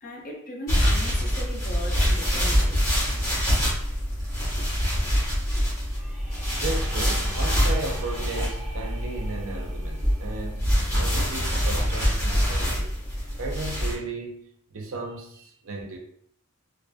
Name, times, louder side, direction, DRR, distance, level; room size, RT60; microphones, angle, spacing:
voice 1, 0.0-2.9, left 1 dB, 40° left, 0.5 m, -38 dB
sound 1, 0.7-13.9, equal, 15° left, 1.1 m, -25 dB
sound 2, 5.9-11.7, right 1 dB, 10° right, 0.8 m, -46 dB
voice 2, 6.6-12.9 13.4-16.0, right 3 dB, 65° right, 0.5 m, -35 dB
2.4 x 2.3 x 2.2 m
head